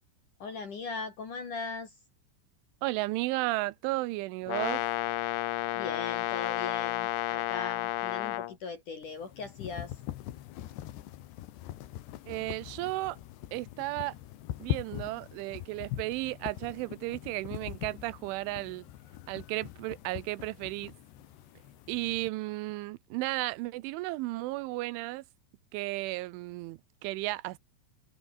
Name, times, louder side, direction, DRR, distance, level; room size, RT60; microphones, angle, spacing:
voice 1, 0.4-1.9 5.7-9.9, left 4 dB, 45° left, 4.1 m, -39 dB
voice 2, 2.8-4.8 12.3-13.2 13.5-14.2 14.6-18.9 19.3-20.9 21.9-25.2 25.7-27.6, right 20 dB, 90° right, 3.3 m, -34 dB
Brass instrument, 4.5-8.5, left 15 dB, 90° left, 3.8 m, -31 dB
sound 1, 9.0-22.3, left 14 dB, 70° left, 3.4 m, -42 dB
omnidirectional pair, 5.4 m